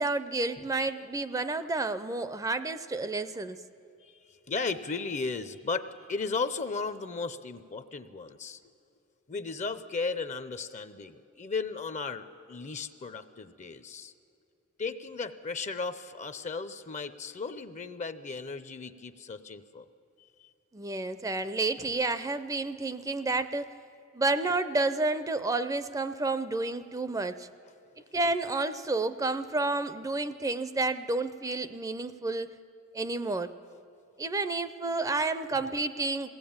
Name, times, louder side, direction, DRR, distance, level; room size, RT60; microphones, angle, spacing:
voice 1, 0.0-3.6 20.7-23.7 24.1-27.5 28.1-32.6 32.9-33.5 34.2-36.3, right 3 dB, 15° right, 13 dB, 0.5 m, -30 dB
voice 2, 4.0-8.6 9.3-14.1 14.8-19.9 20.4-20.5, left 4 dB, 35° left, 12 dB, 0.6 m, -35 dB
21.0 x 17.0 x 8.7 m, 2.7 s
head